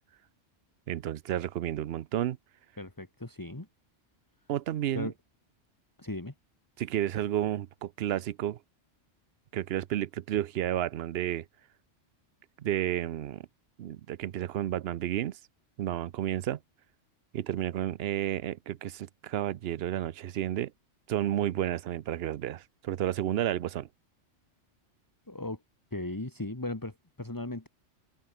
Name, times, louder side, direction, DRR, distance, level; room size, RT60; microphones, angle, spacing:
voice 1, 0.9-2.4 4.5-5.1 6.8-8.6 9.5-11.5 12.6-13.5 13.8-15.4 15.8-16.6 17.3-20.7 21.1-23.9, right 12 dB, 65° right, 0.8 m, -31 dB
voice 2, 2.8-3.7 4.9-5.1 6.0-6.3 25.3-25.6 25.9-27.7, left 2 dB, 15° left, 2.0 m, -37 dB
open air
omnidirectional pair, 1.2 m